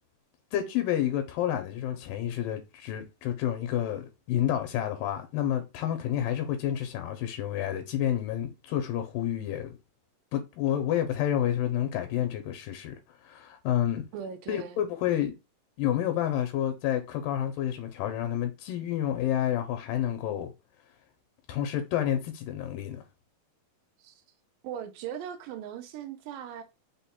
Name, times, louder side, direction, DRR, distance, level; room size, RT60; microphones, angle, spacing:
voice 1, 0.5-9.8 10.3-14.0 14.5-15.3 15.8-20.5 21.5-23.0, left 11 dB, 90° left, 2.3 m, -29 dB
voice 2, 14.1-14.8 24.0-24.2 24.6-26.6, right 8 dB, 85° right, 2.2 m, -39 dB
5.4 x 2.2 x 4.1 m
omnidirectional pair, 3.9 m